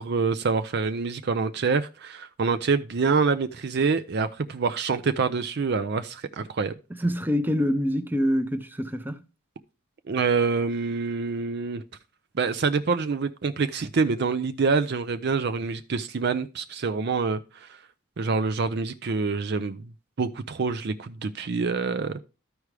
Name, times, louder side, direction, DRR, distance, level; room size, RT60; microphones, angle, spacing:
voice 1, 0.0-6.7 10.1-11.8 12.3-17.8 18.2-19.9 20.2-22.2, right 4 dB, 50° right, 0.5 m, -26 dB
voice 2, 6.9-9.2, equal, 10° right, 0.7 m, -25 dB
13.5 x 4.7 x 3.3 m
head